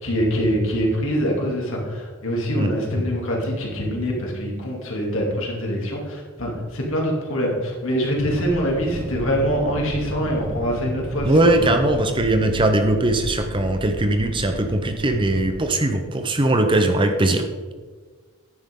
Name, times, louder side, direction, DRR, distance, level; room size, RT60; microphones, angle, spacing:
voice 1, 0.0-11.7, equal, 65° left, -2 dB, 2.8 m, -24 dB
sound 1, 8.2-15.6, right 1 dB, 55° right, 0.9 m, -33 dB
voice 2, 11.2-17.5, right 1 dB, 25° right, 7 dB, 0.7 m, -20 dB
10.5 x 9.6 x 3.8 m, 1.4 s
head